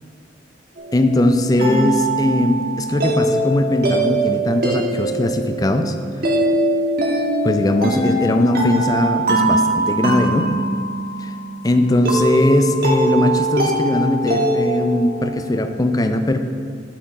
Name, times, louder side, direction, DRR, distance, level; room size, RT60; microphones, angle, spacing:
sound 1, 0.8-15.5, right 1 dB, 55° right, 1.3 m, -22 dB
voice 1, 0.9-6.0 7.4-10.5 11.2-11.3 11.6-16.4, left 1 dB, 20° left, 7 dB, 0.4 m, -19 dB
8.1 x 6.3 x 4.2 m, 2.1 s
head